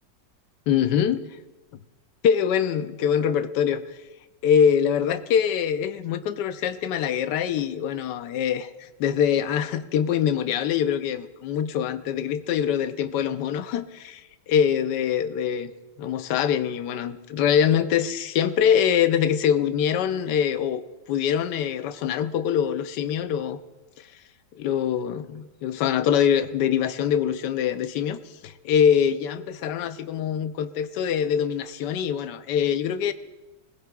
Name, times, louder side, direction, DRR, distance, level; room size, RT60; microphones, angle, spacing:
voice 1, 0.7-1.2 2.2-4.0 4.4-15.7 16.0-23.6 24.0-24.1 24.6-33.1, left 8 dB, 75° left, 1.3 m, -24 dB
23.5 x 16.0 x 2.4 m
omnidirectional pair, 1.9 m